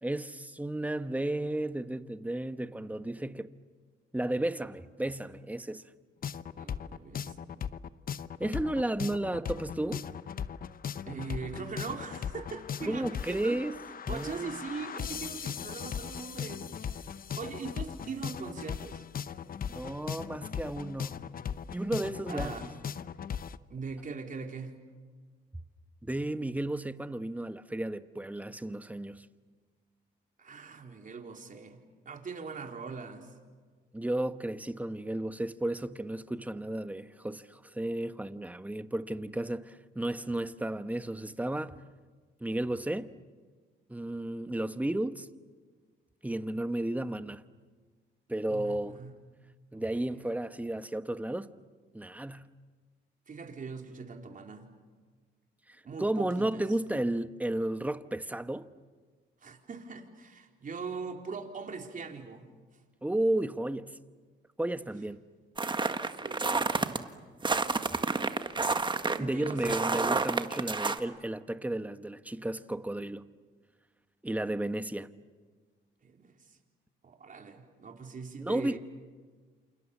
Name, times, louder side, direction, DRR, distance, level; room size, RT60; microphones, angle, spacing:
voice 1, 0.0-3.5 4.1-5.8 8.4-10.0 12.9-13.7 14.1-14.6 19.7-21.2 21.7-22.7 26.0-29.3 33.9-41.8 42.4-43.1 43.9-45.3 46.2-47.4 48.3-49.0 49.7-51.5 51.9-52.5 55.7-58.7 63.0-64.0 64.6-65.2 69.2-73.2 74.2-75.1 78.4-78.8, right 1 dB, 5° right, 1.1 m, -33 dB
sound 1, 6.2-23.6, left 8 dB, 45° left, 0.8 m, -38 dB
voice 2, 6.6-7.7 11.1-13.6 14.1-17.0 17.3-19.0 22.3-22.8 23.7-24.8 30.4-31.8 32.1-33.3 48.5-49.1 49.7-49.8 50.1-50.3 53.3-54.7 55.8-56.6 59.4-62.4 66.2-67.1 69.1-69.8 76.0-76.6 77.0-78.8, right 5 dB, 40° right, 4.0 m, -41 dB
sound 2, 65.6-67.0 67.4-71.0, right 3 dB, 25° right, 1.5 m, -29 dB
28.5 x 28.5 x 7.2 m
cardioid pair, 90°, 20 cm